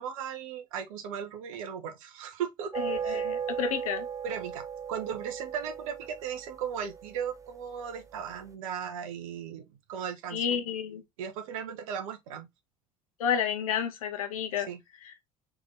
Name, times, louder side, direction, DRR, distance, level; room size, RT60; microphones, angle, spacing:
voice 1, 0.0-2.7 3.0-3.2 4.2-9.6 9.9-10.4 11.2-12.5 14.7-14.8, right 8 dB, 75° right, 1.0 m, -37 dB
sound 1, 2.7-8.2, right 7 dB, 20° right, 0.7 m, -37 dB
voice 2, 2.8-4.1 10.3-11.0 13.2-14.7 15.0-15.1, left 8 dB, 80° left, 0.9 m, -30 dB
3.7 x 3.4 x 3.7 m
hypercardioid pair, 60°, 18 cm